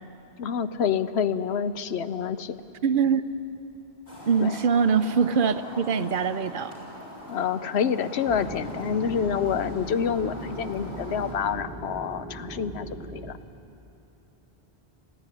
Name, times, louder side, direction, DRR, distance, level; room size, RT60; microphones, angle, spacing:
voice 1, 0.4-2.6 4.4-4.6 7.3-13.4, left 7 dB, 90° left, 12 dB, 1.0 m, -27 dB
voice 2, 2.8-3.2 4.2-6.7, right 6 dB, 60° right, 12 dB, 0.8 m, -23 dB
sound 1, 4.1-11.3, left 1 dB, 50° left, 5.4 m, -41 dB
sound 2, 8.3-13.3, right 1 dB, 10° right, 1.2 m, -39 dB
21.0 x 15.0 x 9.9 m, 2.9 s
omnidirectional pair, 1.1 m